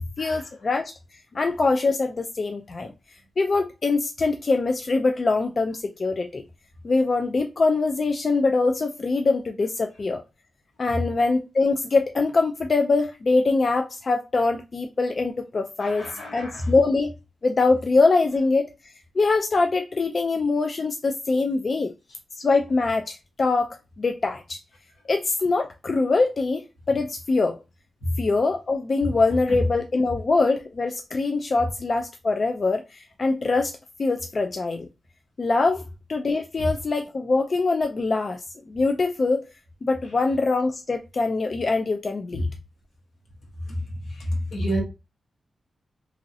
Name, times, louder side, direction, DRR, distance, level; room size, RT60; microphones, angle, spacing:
voice 1, 0.2-0.9 1.3-2.9 3.4-6.4 6.8-10.2 10.8-16.1 16.3-17.1 17.4-18.7 19.2-21.9 22.4-24.6 25.1-27.6 28.2-33.7 34.0-34.9 35.4-35.8 36.1-39.5 39.8-42.5, left 3 dB, 45° left, 0.3 m, -23 dB
voice 2, 15.8-16.6 44.5-44.8, right 1 dB, 80° left, 1.2 m, -30 dB
2.9 x 2.6 x 2.6 m
wide cardioid pair, 105°, 0 cm